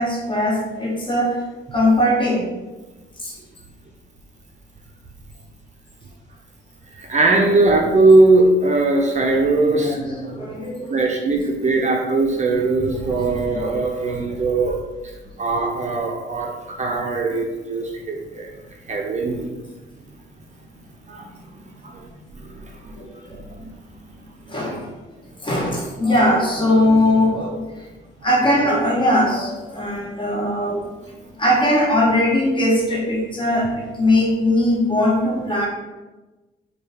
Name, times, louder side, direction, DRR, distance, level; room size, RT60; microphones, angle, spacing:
voice 1, 0.0-1.4 1.7-2.5 3.2-3.3 9.6-11.1 11.6-11.9 13.1-13.8 14.3-14.4 22.8-23.5 24.5-24.9 25.4-27.9 28.2-30.9 31.4-35.7, left 1 dB, 25° left, -4 dB, 1.2 m, -20 dB
voice 2, 6.9-9.9 10.9-14.8 15.0-18.5 18.8-19.5 21.1-21.3 21.8-23.0 23.3-23.7 24.2-24.6, right 2 dB, 35° right, 0 dB, 0.5 m, -20 dB
4.2 x 2.3 x 3.3 m, 1.2 s
cardioid pair, 90°, 20 cm